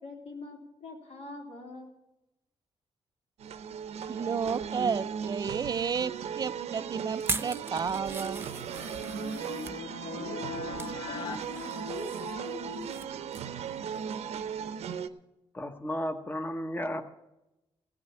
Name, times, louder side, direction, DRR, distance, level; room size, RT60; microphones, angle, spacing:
voice 1, 0.0-2.0 9.2-10.7 11.1-13.2, left 4 dB, 75° left, 0 dB, 3.7 m, -43 dB
sound 1, 3.4-15.1, right 7 dB, 85° right, 0.7 m, -37 dB
voice 2, 4.1-8.5, right 6 dB, 40° right, 16 dB, 0.4 m, -32 dB
sound 2, 7.2-9.8 10.4-11.0 11.4-13.1 13.3-13.6 14.0-14.1, right 3 dB, 20° right, 0.7 m, -39 dB
sound 3, 8.2-12.5, left 5 dB, 50° left, 0.6 m, -43 dB
voice 3, 15.5-17.0, left 1 dB, 20° left, 7 dB, 0.9 m, -33 dB
16.0 x 6.1 x 8.7 m, 0.93 s
cardioid pair, 120°, 11 cm